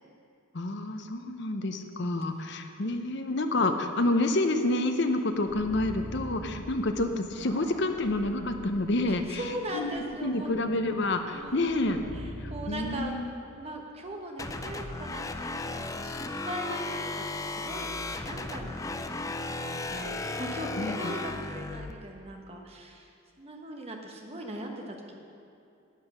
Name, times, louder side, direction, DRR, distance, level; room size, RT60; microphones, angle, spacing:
voice 1, 0.5-9.4 9.7-12.0 12.4-13.3 20.8-21.1, left 2 dB, 50° left, 6 dB, 0.8 m, -28 dB
sound 1, 5.3-13.0, equal, 75° right, 2.6 m, -44 dB
voice 2, 9.1-10.5 11.3-13.1 13.4-17.9 18.2-19.2 19.6-23.1 23.4-25.2, right 1 dB, 30° right, 1 dB, 1.2 m, -40 dB
sound 2, 14.4-21.9, left 2 dB, 15° left, 0.4 m, -35 dB
11.5 x 8.6 x 6.1 m, 2.7 s
head